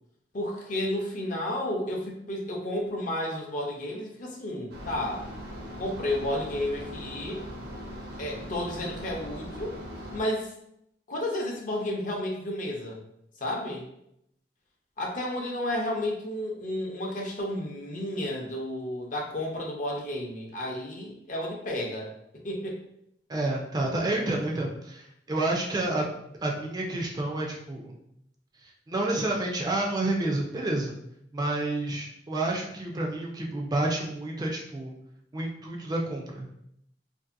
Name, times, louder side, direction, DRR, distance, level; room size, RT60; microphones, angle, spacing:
voice 1, 0.3-5.2 5.8-7.5 8.2-9.7 10.1-10.5 11.1-13.0 13.4-13.9 15.0-22.1 22.4-22.8, left 1 dB, 45° left, -1 dB, 0.6 m, -32 dB
sound 1, 4.7-10.2, equal, 65° right, 0.6 m, -40 dB
voice 2, 23.3-26.1 26.4-28.0 28.9-30.9 31.3-34.9 35.3-36.6, right 2 dB, 25° right, -1 dB, 0.4 m, -29 dB
2.6 x 2.5 x 2.5 m, 0.76 s
head